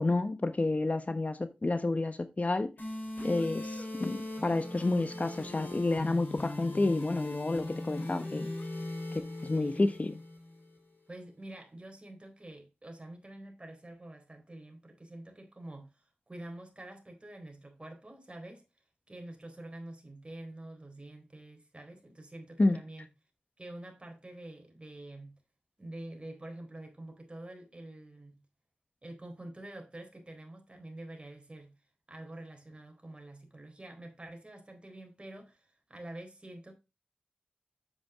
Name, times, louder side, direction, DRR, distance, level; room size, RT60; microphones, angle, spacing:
voice 1, 0.0-2.7 3.2-8.5 9.1-10.1 22.6-22.8, left 2 dB, 45° left, 1.1 m, -30 dB
sound 1, 2.8-10.8, left 2 dB, 75° left, 3.7 m, -39 dB
voice 2, 9.5-9.9 11.1-18.6 19.1-23.1 23.6-25.4 25.8-28.4 29.0-31.8 32.1-36.7, right 1 dB, 35° right, 4.2 m, -47 dB
8.7 x 7.4 x 3.6 m
cardioid pair, 40°, 3 cm